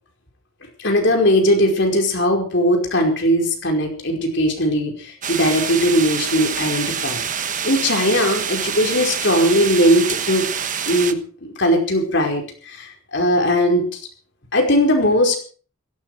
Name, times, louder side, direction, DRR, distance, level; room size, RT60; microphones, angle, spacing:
voice 1, 0.8-7.2 7.6-10.5 10.9-13.8 14.5-15.4, equal, 55° left, 2 dB, 5.0 m, -19 dB
sound 1, 5.2-11.1, right 8 dB, 35° right, 1.3 m, -26 dB
16.5 x 15.5 x 4.9 m, 0.40 s
head